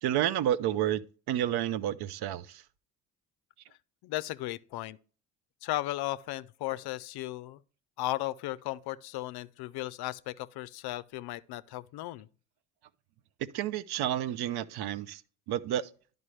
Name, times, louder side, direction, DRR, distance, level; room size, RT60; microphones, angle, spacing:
voice 1, 0.0-1.0 1.3-2.6 13.5-15.2 15.5-15.9, right 11 dB, 50° right, 0.6 m, -30 dB
voice 2, 4.0-5.0 5.6-7.6 8.0-12.3, left 16 dB, 50° left, 0.5 m, -36 dB
11.0 x 5.2 x 3.1 m
hypercardioid pair, 55°, 50 cm